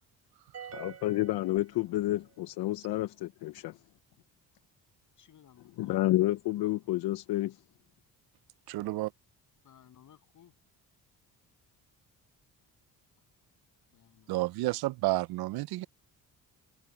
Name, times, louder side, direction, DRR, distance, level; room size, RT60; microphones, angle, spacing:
sound 1, 0.5-2.3, right 8 dB, 45° right, 3.6 m, -47 dB
voice 1, 0.7-3.8 5.8-7.6, left 16 dB, 85° left, 0.7 m, -30 dB
voice 2, 5.2-5.8 6.6-6.7 9.6-10.5 13.9-14.4, left 10 dB, 55° left, 7.1 m, -59 dB
voice 3, 8.7-9.1 14.3-15.9, right 19 dB, 90° right, 0.5 m, -30 dB
cardioid pair, 160°, 37 cm